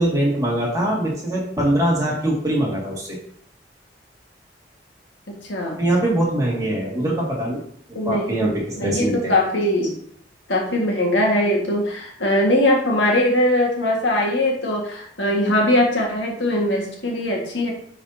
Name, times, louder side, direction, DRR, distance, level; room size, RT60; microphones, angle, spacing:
voice 1, 0.0-3.2 5.8-7.6 7.9-9.3, right 1 dB, 20° right, -4 dB, 2.0 m, -22 dB
voice 2, 5.3-5.8 7.9-10.0 10.5-17.7, left 1 dB, 85° left, -1 dB, 1.7 m, -21 dB
10.0 x 4.1 x 2.8 m, 0.65 s
head